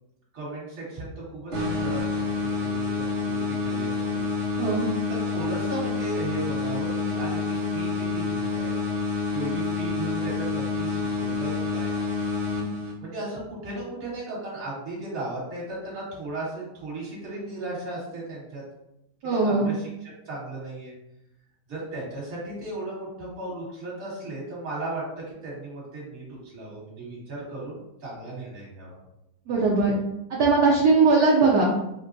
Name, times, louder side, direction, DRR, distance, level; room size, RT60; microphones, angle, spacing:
voice 1, 0.3-2.3 2.6-4.2 5.1-8.7 9.3-12.0 13.0-18.6 19.2-20.9 21.7-29.0, right 2 dB, 45° right, -5 dB, 1.6 m, -36 dB
sound 1, 1.5-13.2, left 4 dB, 25° right, 0.8 m, -28 dB
voice 2, 19.2-19.7 29.5-29.9 30.3-31.6, right 4 dB, 65° right, -4 dB, 1.0 m, -20 dB
4.4 x 2.1 x 2.5 m, 0.86 s
omnidirectional pair, 2.2 m